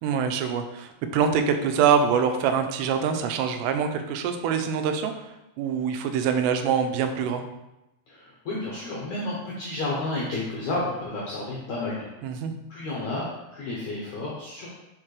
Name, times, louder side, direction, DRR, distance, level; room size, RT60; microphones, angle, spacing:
voice 1, 0.0-5.3 5.6-7.4 12.2-12.5, right 7 dB, 90° right, 6 dB, 2.7 m, -24 dB
voice 2, 8.1-12.1 12.4-14.7, left 2 dB, 80° left, -4 dB, 1.7 m, -31 dB
7.3 x 4.4 x 3.3 m, 0.94 s
omnidirectional pair, 4.7 m